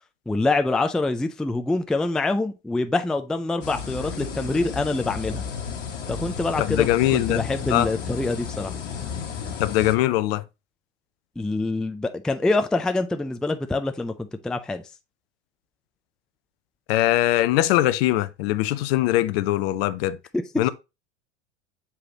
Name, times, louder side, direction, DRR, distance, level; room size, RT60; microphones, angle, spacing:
voice 1, 0.3-5.4 6.1-8.7 11.4-14.8 20.3-20.4, left 2 dB, ahead, 0.4 m, -25 dB
sound 1, 3.6-9.9, left 6 dB, 75° left, 1.3 m, -33 dB
voice 2, 6.6-7.4 7.7-7.9 9.6-10.4 16.9-20.2 20.6-20.7, left 15 dB, 55° left, 0.7 m, -21 dB
7.1 x 4.8 x 2.8 m
hypercardioid pair, 85°, 36 cm